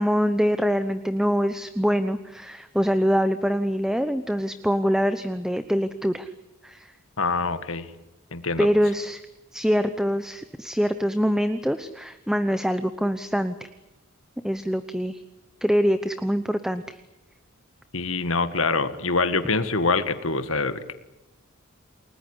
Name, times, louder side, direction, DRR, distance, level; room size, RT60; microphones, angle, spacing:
voice 1, 0.0-6.3 6.6-6.9 8.6-9.2 9.5-13.7 14.4-15.2 15.6-17.0, equal, 5° right, 10 dB, 0.9 m, -24 dB
voice 2, 7.2-7.9 8.3-8.7 17.9-20.9, left 3 dB, 70° left, 11 dB, 1.9 m, -25 dB
29.5 x 19.5 x 9.9 m, 0.99 s
head